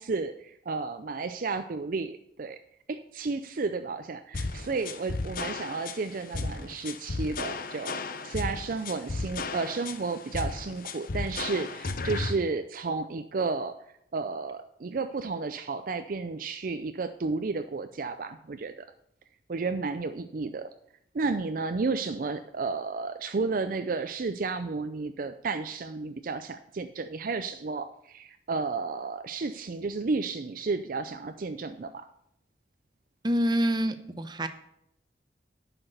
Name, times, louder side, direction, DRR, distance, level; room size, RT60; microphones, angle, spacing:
voice 1, 0.0-2.6 2.9-13.8 14.1-18.7 19.5-20.7 21.1-32.1, right 4 dB, 50° right, 9 dB, 0.5 m, -32 dB
sound 1, 4.3-12.3, left 3 dB, 55° left, 0.7 m, -34 dB
voice 2, 33.2-34.5, equal, 25° right, 9 dB, 0.8 m, -26 dB
10.0 x 5.9 x 6.6 m, 0.73 s
head